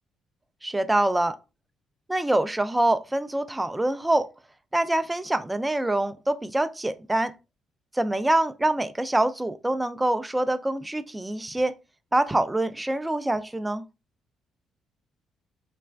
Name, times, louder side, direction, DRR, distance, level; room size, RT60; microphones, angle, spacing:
voice 1, 0.6-1.4 2.1-4.3 4.7-7.3 7.9-11.7 12.1-13.8, right 1 dB, 10° right, 0.4 m, -25 dB
4.0 x 3.3 x 2.3 m
cardioid pair, 120°, 0 cm